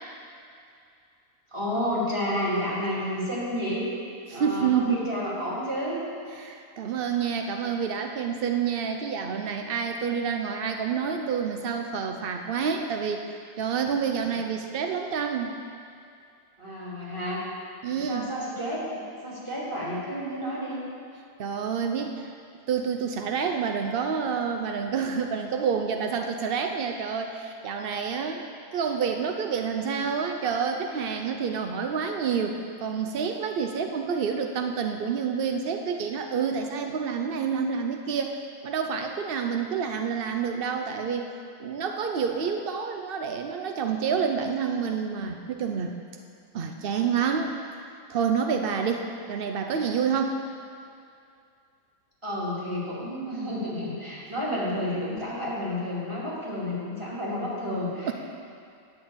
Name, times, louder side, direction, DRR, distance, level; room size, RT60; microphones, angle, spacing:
voice 1, 1.5-3.9 4.3-6.0 14.3-14.4 16.6-17.4 17.9-20.8 52.2-58.1, equal, 15° right, -7 dB, 2.8 m, -31 dB
voice 2, 4.3-5.0 6.4-15.5 17.8-18.3 21.4-22.3 22.7-28.5 28.7-41.3 41.6-46.0 46.5-47.5 48.1-50.4 58.0-58.1, right 6 dB, 80° right, 4 dB, 0.5 m, -28 dB
9.8 x 6.1 x 8.6 m, 2.4 s
omnidirectional pair, 1.8 m